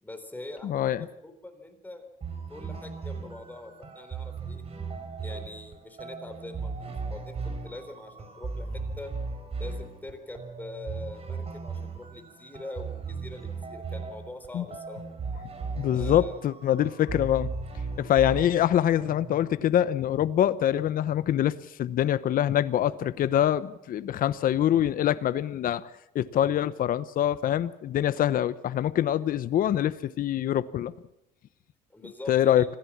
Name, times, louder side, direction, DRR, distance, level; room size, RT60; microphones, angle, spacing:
voice 1, 0.0-2.1 2.5-4.6 5.2-9.1 9.6-15.0 15.9-16.4 18.2-18.5 31.9-32.7, left 2 dB, 10° left, 6 dB, 4.0 m, -43 dB
voice 2, 0.6-1.0 14.5-14.6 15.8-17.5 18.0-21.5 21.8-25.8 26.1-30.9 32.3-32.6, left 11 dB, 55° left, 14 dB, 0.9 m, -24 dB
sound 1, 2.2-19.5, right 4 dB, 35° right, 4.7 m, -37 dB
26.0 x 16.0 x 7.4 m, 0.83 s
cardioid pair, 110°, 17 cm